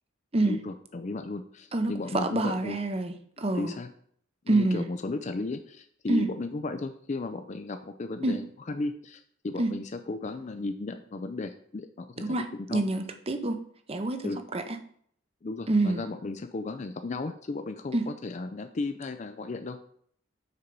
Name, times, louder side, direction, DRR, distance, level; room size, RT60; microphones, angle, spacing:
voice 1, 0.4-2.8 3.6-3.9 4.5-12.4 12.7-12.8 14.2-14.4 15.4-19.8, left 3 dB, 35° left, 8 dB, 0.4 m, -35 dB
voice 2, 1.7-3.7 4.5-4.9 6.1-6.3 8.2-8.4 9.6-9.7 12.2-12.4 12.7-13.6 13.9-14.8 15.7-16.0 17.9-18.1, right 2 dB, 30° right, 7 dB, 0.7 m, -27 dB
6.7 x 4.5 x 5.3 m, 0.62 s
head